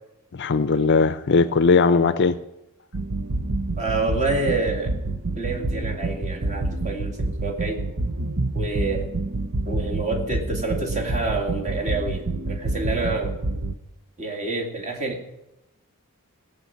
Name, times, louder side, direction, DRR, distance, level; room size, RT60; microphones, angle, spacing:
voice 1, 0.3-2.4, left 4 dB, 50° left, 14 dB, 0.5 m, -19 dB
sound 1, 2.9-13.7, right 2 dB, 60° right, 0.8 m, -27 dB
voice 2, 3.8-4.9 5.4-7.8 8.5-9.1 9.6-13.3 14.2-15.2, right 3 dB, 35° right, 0 dB, 2.4 m, -28 dB
17.0 x 5.9 x 8.5 m, 0.91 s
head